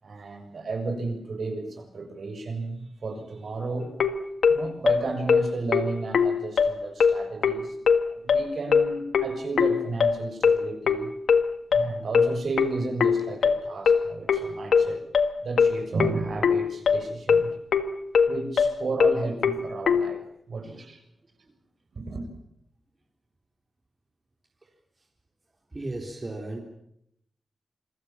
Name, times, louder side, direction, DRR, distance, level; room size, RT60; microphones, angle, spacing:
voice 1, 0.0-4.0 4.5-7.8 8.1-11.1 11.7-15.0 15.4-17.5 18.1-20.2 20.5-21.0 22.0-22.3, right 3 dB, 60° right, 5 dB, 6.9 m, -33 dB
sound 1, 4.0-20.1, left 6 dB, 85° left, 1.7 m, -21 dB
voice 2, 25.7-26.6, right 2 dB, 25° right, 2 dB, 4.0 m, -34 dB
27.5 x 22.5 x 7.5 m, 0.76 s
wide cardioid pair, 140°, 0 cm